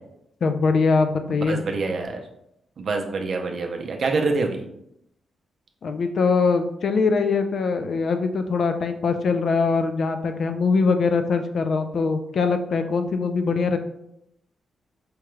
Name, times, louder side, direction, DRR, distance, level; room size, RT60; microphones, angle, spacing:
voice 1, 0.4-1.6 5.8-13.8, left 4 dB, 55° left, 7 dB, 0.3 m, -22 dB
voice 2, 1.3-2.2 2.8-4.7, right 3 dB, 50° right, 3 dB, 0.5 m, -26 dB
4.8 x 2.2 x 3.1 m, 0.79 s
wide cardioid pair, 150°, 0 cm